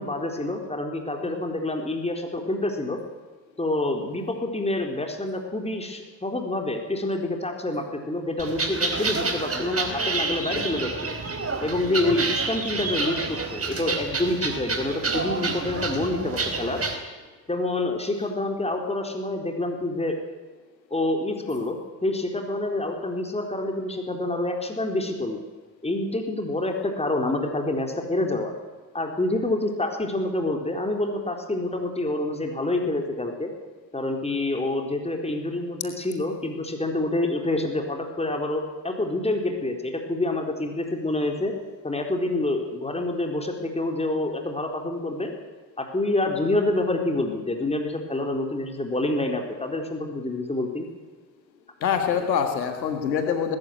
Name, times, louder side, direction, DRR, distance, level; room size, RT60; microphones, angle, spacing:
voice 1, 0.0-3.0 3.6-11.2 11.6-16.8 17.5-20.2 20.9-25.4 25.8-28.5 28.9-33.5 33.9-41.5 41.8-45.3 45.8-50.9, left 2 dB, 10° left, 3 dB, 4.3 m, -27 dB
sound 1, 8.4-16.9, right 3 dB, 25° right, 4.4 m, -28 dB
voice 2, 51.8-53.6, left 7 dB, 85° left, 6 dB, 1.9 m, -25 dB
20.5 x 15.5 x 9.5 m, 1.3 s
hypercardioid pair, 55°, 50 cm